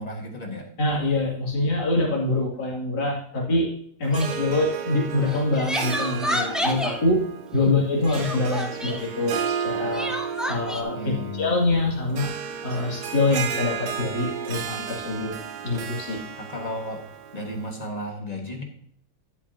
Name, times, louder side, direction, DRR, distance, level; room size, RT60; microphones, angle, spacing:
voice 1, 0.0-0.7 7.6-7.7 11.0-11.5 16.4-17.0 17.3-18.6, left 1 dB, 25° left, 2 dB, 1.5 m, -34 dB
voice 2, 0.8-3.7 4.0-7.2 7.5-10.1 10.5-12.3 12.6-15.4 15.6-16.2, left 2 dB, 80° left, -4 dB, 3.1 m, -25 dB
Harp, 4.0-17.8, right 7 dB, 80° right, 1.4 m, -33 dB
Crying sobbing, 4.1-4.4 5.2-7.0 8.1-9.0 9.9-10.8, left 1 dB, ahead, 0.6 m, -29 dB
12.5 x 8.3 x 2.7 m, 0.66 s
omnidirectional pair, 1.8 m